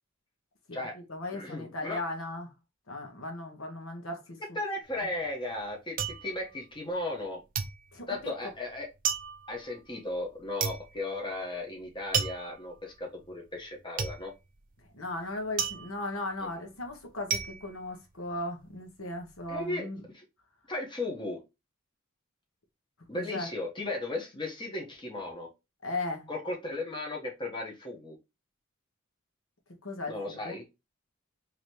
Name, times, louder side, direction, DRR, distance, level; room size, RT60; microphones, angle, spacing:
voice 1, 0.7-2.5 2.9-4.4 7.9-8.3 14.9-20.0 23.1-23.5 25.8-26.3 29.8-30.6, left 2 dB, 80° left, 1.1 m, -37 dB
voice 2, 1.3-2.0 4.5-7.4 8.1-8.9 9.5-14.3 16.4-16.7 19.5-20.2 20.7-21.4 23.1-25.5 26.3-28.2 30.1-30.7, left 2 dB, 25° left, 1.1 m, -36 dB
sound 1, 4.9-7.2 7.5-18.7 19.0-19.6, right 7 dB, 40° right, 0.5 m, -35 dB
4.0 x 3.0 x 3.2 m
head